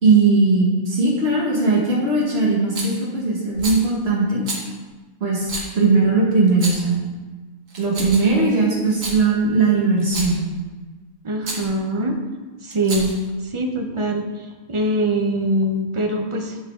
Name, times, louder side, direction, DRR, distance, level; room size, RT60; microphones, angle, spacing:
voice 1, 0.0-4.4 5.2-7.0 7.8-10.4, right 3 dB, 50° right, -5 dB, 2.2 m, -19 dB
Rattle, 2.7-3.0 3.6-3.8 4.5-4.6 5.5-5.7 6.5-6.9 7.7-8.4 8.9-9.2 10.0-10.4 11.4-11.7 12.7-13.3, right 2 dB, 80° right, 1.8 m, -30 dB
voice 2, 11.2-12.2 12.6-13.1 13.4-16.6, right 1 dB, 30° right, 3 dB, 0.6 m, -23 dB
11.5 x 4.8 x 3.7 m, 1.3 s
omnidirectional pair, 1.3 m